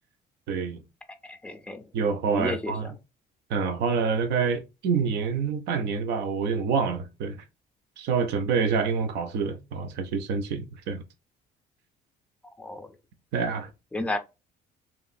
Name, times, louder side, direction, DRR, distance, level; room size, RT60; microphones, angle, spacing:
voice 1, 0.5-0.8 1.9-3.0 3.5-7.4 8.0-11.0 13.3-13.7, right 5 dB, 80° right, 0.6 m, -27 dB
voice 2, 1.3-1.8 2.3-2.7 12.6-12.9 13.9-14.2, left 2 dB, 5° left, 0.4 m, -31 dB
3.0 x 2.4 x 2.5 m
cardioid pair, 110°, 17 cm